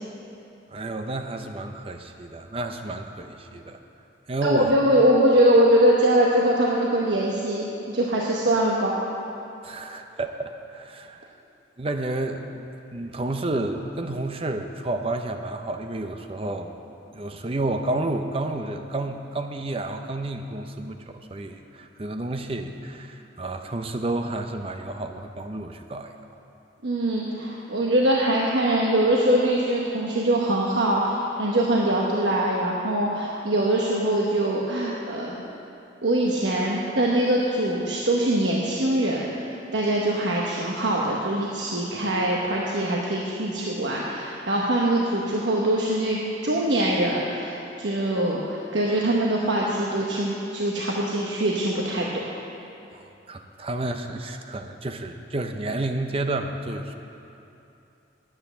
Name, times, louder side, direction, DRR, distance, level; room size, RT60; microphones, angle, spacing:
voice 1, 0.7-3.8 4.3-4.7 9.6-11.4 11.8-16.7 17.1-26.1 52.9-56.9, right 2 dB, 30° right, 6 dB, 0.6 m, -31 dB
voice 2, 4.4-9.0 26.8-35.4 36.0-52.1, right 1 dB, 80° right, -3 dB, 1.1 m, -23 dB
10.0 x 8.7 x 6.9 m, 2.8 s
head